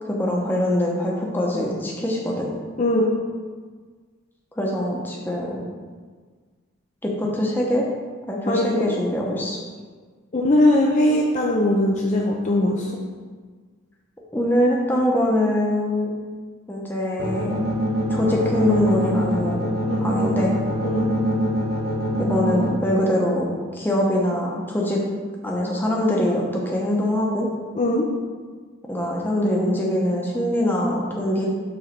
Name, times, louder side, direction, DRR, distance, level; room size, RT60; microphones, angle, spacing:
voice 1, 0.1-2.5 4.6-5.6 7.0-7.8 8.3-9.6 14.3-16.1 16.7-17.6 18.1-19.7 20.0-20.6 22.2-25.0 25.4-27.5 28.9-31.5, left 1 dB, 10° left, -3 dB, 0.8 m, -23 dB
voice 2, 2.8-3.2 8.5-8.9 10.3-13.0 19.8-20.0 20.8-21.1 27.8-28.1, left 1 dB, 35° left, -2 dB, 0.5 m, -20 dB
sound 1, 17.2-22.7, right 1 dB, 45° right, 1.1 m, -24 dB
5.0 x 4.0 x 5.9 m, 1.5 s
head